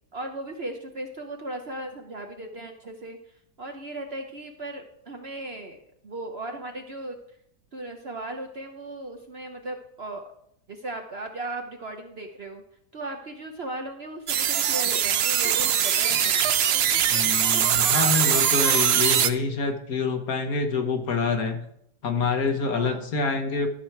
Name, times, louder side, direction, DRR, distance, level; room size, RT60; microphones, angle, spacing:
voice 1, 0.1-7.2 7.7-10.2 10.7-12.6 12.9-16.3 22.7-23.1, right 2 dB, 45° right, 4 dB, 0.9 m, -37 dB
sound 1, 14.3-19.3, right 9 dB, 75° right, 0.5 m, -22 dB
voice 2, 17.1-21.6 22.0-23.7, left 4 dB, 60° left, 5 dB, 1.6 m, -26 dB
13.0 x 6.3 x 4.6 m, 0.73 s
omnidirectional pair, 1.8 m